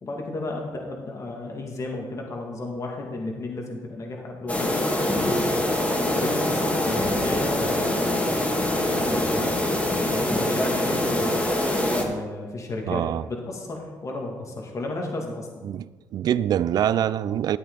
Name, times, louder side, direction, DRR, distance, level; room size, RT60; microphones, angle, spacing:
voice 1, 0.0-4.7 5.2-5.5 6.1-8.2 8.9-9.6 10.0-11.4 11.9-15.7, left 2 dB, 45° left, 2.3 m, -33 dB
sound 1, 4.5-12.0, left 1 dB, 20° left, 2.4 m, -24 dB
voice 2, 12.9-13.2 15.7-17.6, right 10 dB, 65° right, 0.4 m, -24 dB
12.5 x 8.6 x 4.0 m
supercardioid pair, 70°, 7 cm